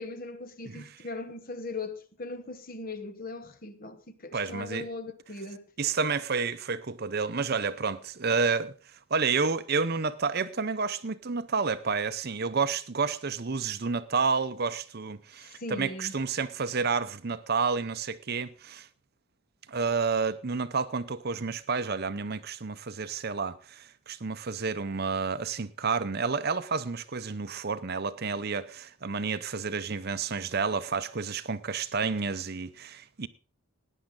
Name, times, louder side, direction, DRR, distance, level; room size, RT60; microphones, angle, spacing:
voice 1, 0.0-5.6 15.4-16.1, left 2 dB, 40° left, 1.2 m, -39 dB
voice 2, 4.3-4.9 5.8-8.7 9.1-18.9 19.7-33.3, right 5 dB, 45° right, 0.7 m, -30 dB
18.0 x 10.0 x 3.8 m
head